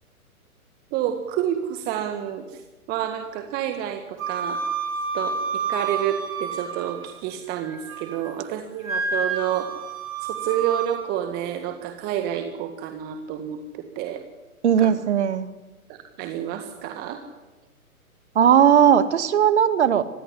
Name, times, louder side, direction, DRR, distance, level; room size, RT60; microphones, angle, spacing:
voice 1, 0.9-2.6 2.9-4.6 5.1-9.7 10.2-14.2 14.8-14.9 15.9-17.2, right 10 dB, 20° right, 6 dB, 1.7 m, -29 dB
Wind instrument woodwind instrument, 4.2-7.2 7.6-8.3 8.8-11.0, right 5 dB, 65° right, 6.1 m, -29 dB
voice 2, 14.6-15.5 18.4-20.0, right 9 dB, 50° right, 12 dB, 2.0 m, -17 dB
25.0 x 21.0 x 9.8 m, 1.1 s
figure-of-eight pair, 125°, 43 cm